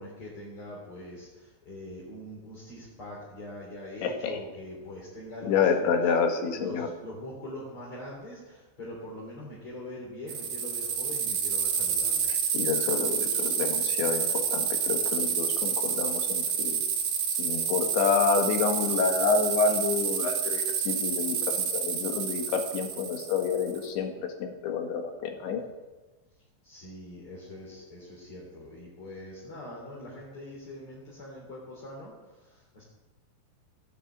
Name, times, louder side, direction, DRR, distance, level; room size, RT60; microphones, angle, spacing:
voice 1, 0.0-6.0 6.5-12.3 26.6-32.8, left 1 dB, 30° left, -5 dB, 3.6 m, -43 dB
voice 2, 4.0-4.4 5.4-6.9 12.3-16.8 17.4-25.6, left 5 dB, 70° left, 4 dB, 3.7 m, -28 dB
sound 1, 10.3-23.9, right 7 dB, 50° right, 3.1 m, -29 dB
15.5 x 10.0 x 8.7 m, 1.1 s
omnidirectional pair, 5.9 m